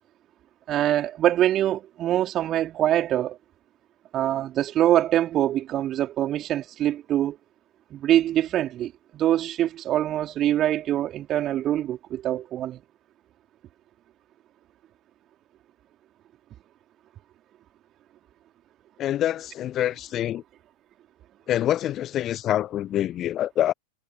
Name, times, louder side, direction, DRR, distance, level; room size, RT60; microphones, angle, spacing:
voice 1, 0.7-3.4 4.1-7.4 7.9-12.8, right 12 dB, 30° right, 4.4 m, -24 dB
voice 2, 19.0-20.4 21.5-23.7, left 12 dB, 30° left, 1.0 m, -26 dB
figure-of-eight pair, 90°, 0 cm